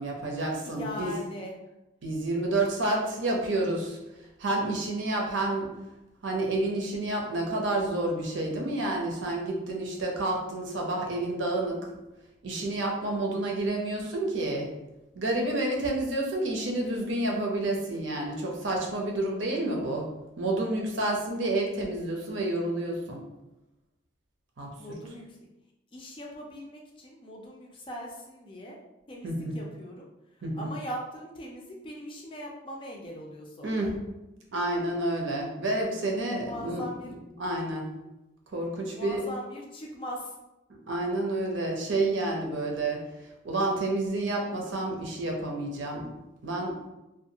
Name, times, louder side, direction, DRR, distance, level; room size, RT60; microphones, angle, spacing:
voice 1, 0.0-1.1 2.0-4.0 4.4-5.7 6.2-11.8 12.4-14.7 15.1-20.1 20.4-23.2 24.6-24.7 29.2-29.5 30.4-30.7 33.6-33.9 34.5-36.8 37.1-37.9 38.5-39.3 40.9-43.0 43.4-46.1 46.4-46.7, right 2 dB, 80° right, 0 dB, 0.6 m, -29 dB
voice 2, 0.6-1.5 24.8-25.4 25.9-28.8 29.1-30.1 30.5-33.9 35.9-37.1 38.9-40.3, equal, 25° left, -1 dB, 0.4 m, -40 dB
2.6 x 2.3 x 2.7 m, 0.97 s
head